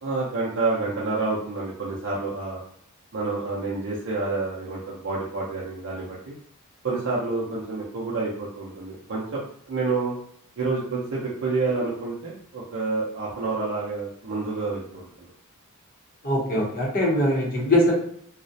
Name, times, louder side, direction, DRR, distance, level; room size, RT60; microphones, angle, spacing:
voice 1, 0.0-2.6 3.1-6.3 6.8-9.4 9.7-10.1 10.6-15.3, right 3 dB, 60° right, -6 dB, 0.5 m, -28 dB
voice 2, 16.2-18.0, left 1 dB, 40° left, -3 dB, 0.7 m, -22 dB
2.4 x 2.0 x 2.6 m, 0.65 s
head